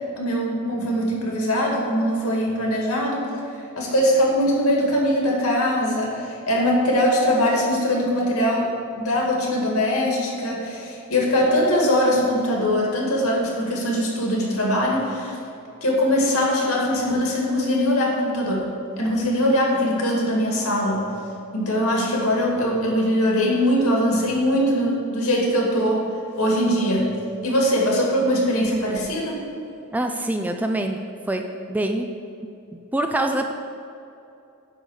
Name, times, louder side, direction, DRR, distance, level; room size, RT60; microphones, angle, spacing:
voice 1, 0.2-3.2 3.8-8.7 9.0-15.4 15.8-21.1 21.5-27.1 27.4-29.4, equal, 75° left, -2 dB, 2.1 m, -21 dB
voice 2, 29.9-31.0 31.3-32.1 32.9-33.5, right 1 dB, 5° right, 5 dB, 0.3 m, -25 dB
10.0 x 4.0 x 6.4 m, 2.8 s
head